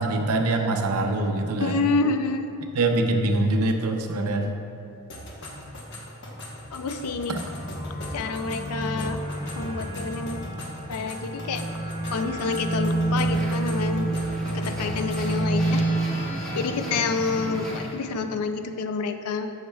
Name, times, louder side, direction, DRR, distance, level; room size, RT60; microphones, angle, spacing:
voice 1, 0.0-1.8 2.7-4.5 7.3-7.4, right 2 dB, 80° right, 4 dB, 0.6 m, -24 dB
voice 2, 1.6-2.5 6.7-7.4 8.1-9.2 9.6-10.4 10.9-11.6 12.1-14.1 14.5-15.8 16.6-19.5, left 4 dB, 90° left, 8 dB, 0.4 m, -28 dB
sound 1, 5.1-15.4, equal, 55° left, 1.0 m, -40 dB
sound 2, 7.4-17.8, right 2 dB, 35° left, 0.7 m, -29 dB
sound 3, 13.2-18.4, equal, 5° left, 1.1 m, -38 dB
8.4 x 6.5 x 2.3 m, 2.6 s
head